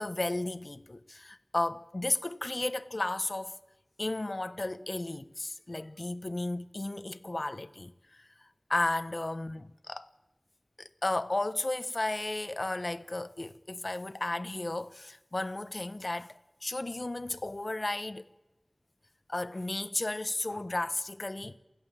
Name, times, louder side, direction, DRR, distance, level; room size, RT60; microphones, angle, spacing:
voice 1, 0.0-3.6 4.0-8.3 8.7-10.1 10.8-18.3 19.3-21.6, left 2 dB, 60° left, 1.0 m, -34 dB
28.0 x 16.5 x 7.5 m
wide cardioid pair, 45°, 0 cm